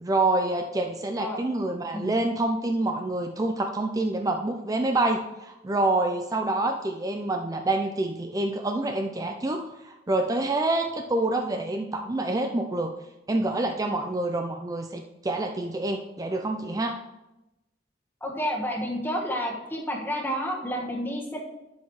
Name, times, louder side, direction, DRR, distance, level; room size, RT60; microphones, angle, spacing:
voice 1, 0.0-12.9 13.3-17.0, right 2 dB, 20° right, 5 dB, 0.4 m, -27 dB
voice 2, 18.2-21.4, equal, 10° left, -1 dB, 1.3 m, -30 dB
11.0 x 7.1 x 3.1 m, 0.95 s
head